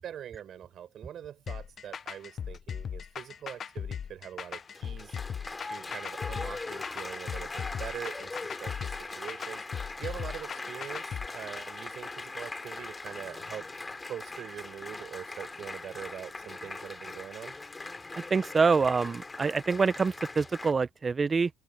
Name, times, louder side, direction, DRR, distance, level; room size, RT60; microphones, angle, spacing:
voice 1, 0.0-5.2 5.6-9.6 10.0-13.7 14.1-17.6, right 10 dB, 65° right, 7.3 m, -43 dB
sound 1, 1.5-11.3, left 7 dB, 50° left, 0.7 m, -38 dB
Applause, 4.5-20.7, left 3 dB, 25° left, 3.0 m, -41 dB
voice 2, 18.3-21.5, right 4 dB, 35° right, 0.8 m, -26 dB
open air
supercardioid pair, 65°, 0 cm